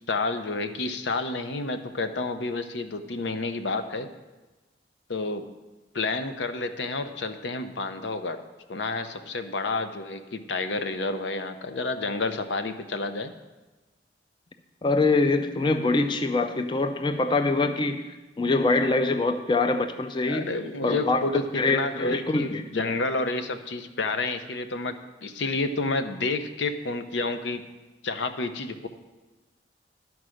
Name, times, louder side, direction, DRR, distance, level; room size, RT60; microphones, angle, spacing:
voice 1, 0.1-4.1 5.1-5.4 5.9-8.4 8.7-13.3 20.3-25.0 25.2-27.7 28.0-28.9, left 3 dB, 85° left, 9 dB, 0.6 m, -30 dB
voice 2, 14.8-20.5 20.8-21.2 21.6-22.6, left 3 dB, 25° left, 8 dB, 0.4 m, -24 dB
11.0 x 4.7 x 6.3 m, 1.2 s
head